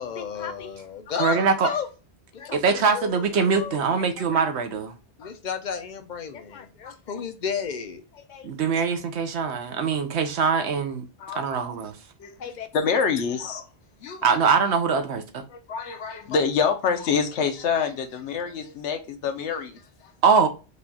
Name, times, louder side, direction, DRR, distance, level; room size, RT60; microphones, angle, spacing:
voice 1, 0.0-1.9 2.3-4.4 5.2-8.5 12.4-12.7, left 6 dB, 55° left, 0.5 m, -33 dB
voice 2, 1.2-1.7 2.5-4.9 8.4-11.0 11.3-11.9 14.2-15.4 20.2-20.5, right 5 dB, 75° right, 0.9 m, -23 dB
voice 3, 12.2-13.7 14.0-14.4 15.5-20.1, left 6 dB, 80° left, 1.0 m, -27 dB
5.1 x 2.3 x 4.0 m
omnidirectional pair, 1.2 m